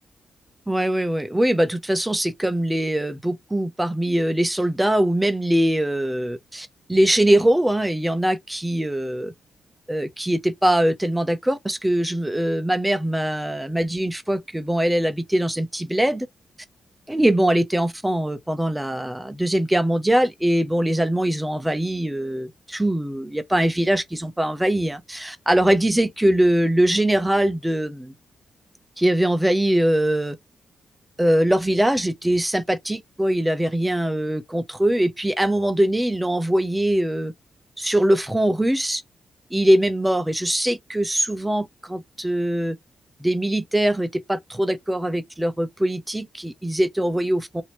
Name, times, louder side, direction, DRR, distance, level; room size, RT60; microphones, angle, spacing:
voice 1, 0.7-9.3 9.9-16.3 17.1-28.1 29.0-30.4 31.2-37.3 37.8-39.0 39.5-42.8 43.2-47.6, right 1 dB, 5° right, 0.6 m, -22 dB
2.9 x 2.7 x 3.0 m
wide cardioid pair, 130°, 0 cm